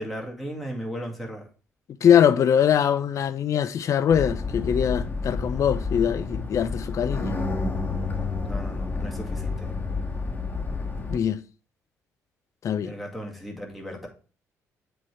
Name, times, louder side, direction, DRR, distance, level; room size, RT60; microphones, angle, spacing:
voice 1, 0.0-1.5 8.4-9.7 12.8-14.1, equal, ahead, 2.0 m, -36 dB
voice 2, 2.0-7.4 11.1-11.4 12.6-12.9, left 8 dB, 40° left, 0.4 m, -22 dB
sound 1, 4.1-11.2, left 3 dB, 25° left, 1.5 m, -29 dB
7.4 x 3.4 x 5.1 m
figure-of-eight pair, 45°, 8 cm